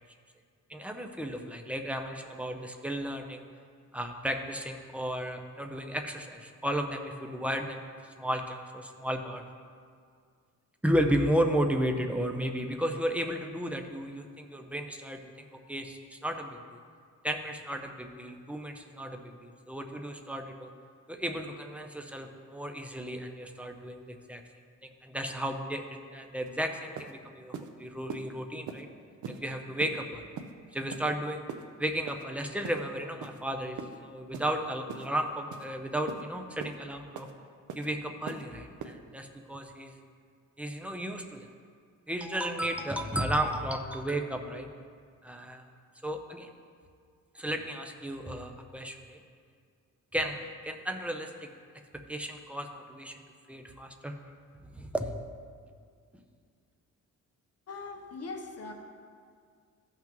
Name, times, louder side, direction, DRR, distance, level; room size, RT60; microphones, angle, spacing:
voice 1, 0.7-3.4 3.9-9.4 10.8-16.8 17.2-20.7 21.1-24.4 24.8-28.9 29.3-30.3 30.7-31.4 31.8-37.3 37.8-40.0 40.6-41.5 42.1-44.7 45.2-45.7 46.0-46.5 47.3-49.2 50.1-51.5 52.1-53.1 53.5-54.1 54.6-55.1, equal, 5° right, 4 dB, 0.5 m, -34 dB
sound 1, 26.5-26.6 27.0-27.1 27.5-27.7 28.1-28.2 28.7-28.8 29.2-29.4 29.8-30.0 30.4-30.5 30.9-31.1 31.5-31.6 32.1-32.2 32.6-32.8 33.2-33.4 33.8-34.0 34.3-34.5 34.9-35.1 35.5-35.7 36.1-36.2 36.6-36.8 37.2-37.3 37.7-37.9 38.3-38.4 38.8-38.9, right 6 dB, 65° right, 0.6 m, -40 dB
voice 2, 57.7-58.7, left 3 dB, 50° left, 2 dB, 0.9 m, -40 dB
14.0 x 5.9 x 3.0 m, 2.1 s
wide cardioid pair, 150°, 32 cm